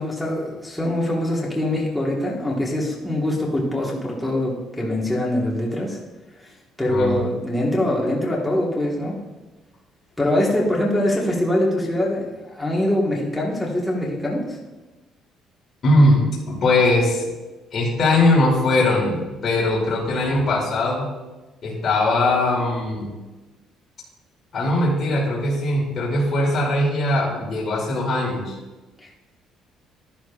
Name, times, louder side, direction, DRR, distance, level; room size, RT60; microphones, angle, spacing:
voice 1, 0.0-6.0 6.4-6.5 6.8-9.2 10.2-14.6 29.0-29.2, left 1 dB, 5° left, -4 dB, 1.5 m, -23 dB
voice 2, 15.8-17.2 17.7-21.1 21.6-23.1 24.5-28.6, left 2 dB, 35° left, -5 dB, 2.7 m, -20 dB
12.0 x 11.5 x 2.4 m, 1.1 s
cardioid pair, 165°, 0 cm